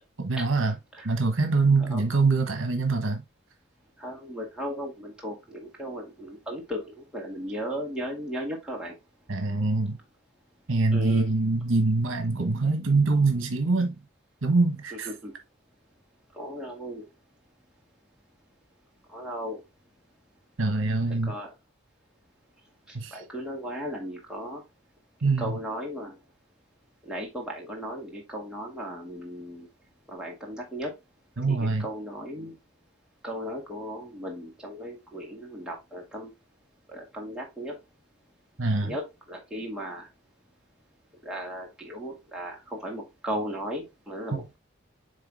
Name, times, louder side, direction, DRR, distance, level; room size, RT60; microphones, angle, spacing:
voice 1, 0.2-0.7 1.0-3.2 9.3-10.0 10.7-13.9 14.4-15.1 20.6-21.3 22.9-23.1 25.2-25.6 31.4-31.9 38.6-39.0, right 3 dB, 75° right, 1.2 m, -24 dB
voice 2, 4.0-8.9 10.9-11.3 14.9-15.3 16.3-17.1 19.1-19.6 21.2-21.5 22.9-24.6 25.4-26.2 27.0-29.7 30.1-30.9 31.5-32.6 33.2-36.3 36.9-37.8 38.8-40.1 41.2-44.6, equal, 5° right, 2.1 m, -36 dB
8.3 x 3.4 x 3.5 m
head